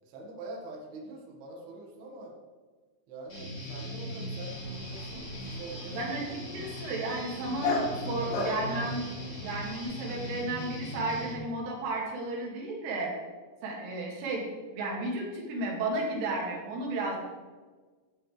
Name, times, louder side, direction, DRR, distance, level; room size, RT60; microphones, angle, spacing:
voice 1, 0.0-2.3 3.1-4.6 4.9-6.0, right 2 dB, 60° right, -2 dB, 3.4 m, -44 dB
Guitar, 3.3-11.3, equal, 25° left, 4.5 m, -39 dB
Dog, 4.5-9.8, left 3 dB, 60° left, 4.5 m, -37 dB
voice 2, 5.9-9.1 9.4-13.1 13.6-14.4 14.7-17.2, right 2 dB, 75° right, -2 dB, 4.7 m, -33 dB
15.0 x 10.0 x 3.4 m, 1.4 s
omnidirectional pair, 5.7 m